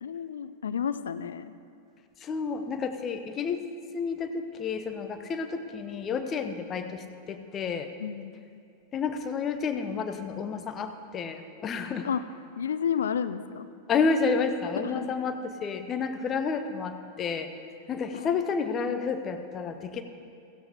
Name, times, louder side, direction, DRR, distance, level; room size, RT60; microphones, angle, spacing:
voice 1, 0.0-1.5 8.0-8.3 12.0-12.2 12.6-13.7 14.8-15.1 18.1-18.4, left 8 dB, 65° left, 12 dB, 0.5 m, -31 dB
voice 2, 2.2-3.6 3.9-7.9 8.9-12.1 13.9-17.5 17.9-20.0, left 5 dB, 25° left, 8 dB, 0.8 m, -30 dB
17.0 x 15.5 x 2.9 m, 2.6 s
figure-of-eight pair, 90°, 0 cm